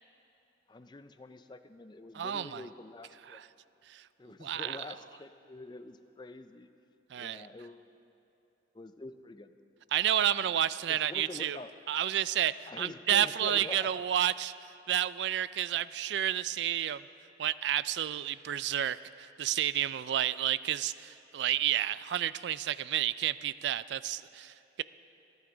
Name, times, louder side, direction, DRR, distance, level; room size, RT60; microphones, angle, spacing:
voice 1, 0.7-3.4 4.2-6.7 7.1-7.9 8.7-9.5 10.4-11.7 12.7-14.0, left 2 dB, 25° left, 10 dB, 0.4 m, -46 dB
voice 2, 2.1-2.6 3.3-3.4 3.9-4.0 4.4-4.8 7.1-7.5 9.9-11.6 11.9-14.5 14.9-17.0 17.4-24.8, right 11 dB, 65° right, 16 dB, 0.3 m, -30 dB
27.0 x 9.4 x 3.9 m, 2.8 s
head